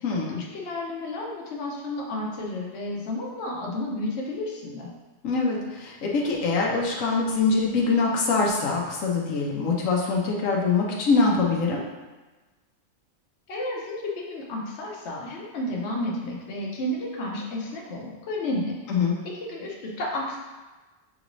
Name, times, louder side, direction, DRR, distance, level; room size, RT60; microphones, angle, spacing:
voice 1, 0.0-0.4 5.2-11.8 18.9-19.2, left 4 dB, 85° left, -2 dB, 1.1 m, -24 dB
voice 2, 0.5-4.9 13.5-18.7 19.5-20.4, left 1 dB, 60° left, -2 dB, 1.0 m, -31 dB
5.9 x 2.6 x 3.0 m, 1.2 s
omnidirectional pair, 1.3 m